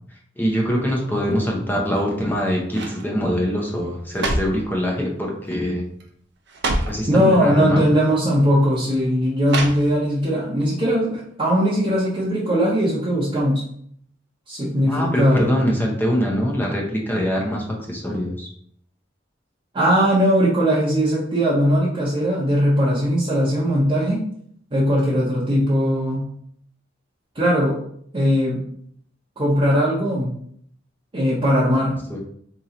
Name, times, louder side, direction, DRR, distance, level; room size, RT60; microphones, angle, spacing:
voice 1, 0.4-5.8 6.9-8.0 14.8-18.5 32.1-32.2, equal, 10° left, -1 dB, 0.6 m, -23 dB
sound 1, 1.8-2.3 2.7-3.0 3.8-4.7 5.5-5.7 6.0-6.1 6.5-7.0 8.0-8.1 9.4-10.2 10.6-10.7, right 2 dB, 60° right, 0.6 m, -27 dB
voice 2, 7.1-13.6 14.5-15.5 19.7-24.2 24.7-26.2 27.3-27.8 28.1-28.6 29.4-30.3 31.1-32.0, equal, 25° right, -8 dB, 0.8 m, -19 dB
3.0 x 2.8 x 3.8 m, 0.65 s
head